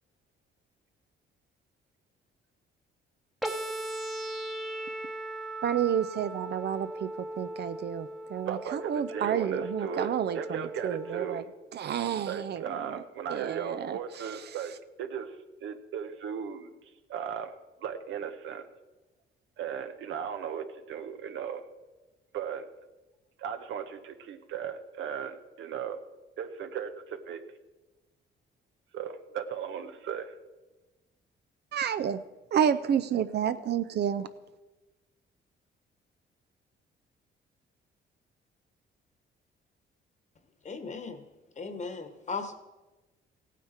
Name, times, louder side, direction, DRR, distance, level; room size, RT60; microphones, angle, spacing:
sound 1, 3.4-11.4, right 1 dB, ahead, 1.0 m, -38 dB
voice 1, 5.6-7.1 7.4-11.4 11.7-12.6 13.3-14.0 31.7-32.2 32.5-34.3, right 9 dB, 60° right, 12 dB, 0.6 m, -30 dB
voice 2, 8.5-11.5 12.3-14.7 15.0-15.4 15.6-16.7 17.1-17.5 17.8-18.7 19.6-21.6 22.3-22.7 23.4-26.0 26.4-27.4 28.9-30.4, right 8 dB, 75° right, 8 dB, 1.0 m, -37 dB
voice 3, 40.6-41.2 41.6-42.5, left 4 dB, 35° left, 9 dB, 1.3 m, -37 dB
16.0 x 9.2 x 4.4 m, 1.1 s
cardioid pair, 90°, 20 cm